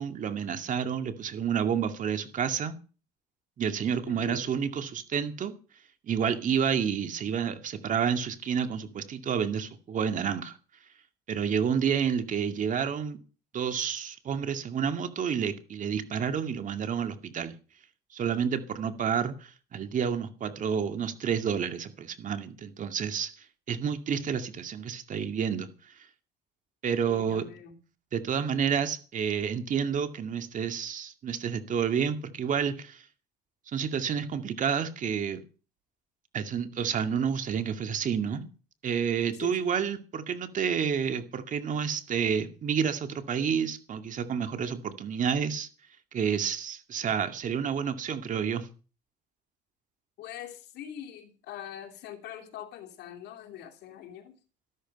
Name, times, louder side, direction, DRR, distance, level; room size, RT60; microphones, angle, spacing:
voice 1, 0.0-2.8 3.6-5.5 6.0-10.6 11.3-13.2 13.5-17.5 18.1-23.3 23.7-25.7 26.8-27.4 28.1-33.0 33.7-35.4 36.3-38.5 38.8-45.7 46.1-48.7, right 7 dB, 50° right, 2.3 m, -29 dB
voice 2, 4.1-4.6 27.1-27.8 39.3-39.7 50.2-54.4, left 9 dB, 80° left, 2.9 m, -43 dB
13.5 x 13.5 x 5.4 m
cardioid pair, 110°, 17 cm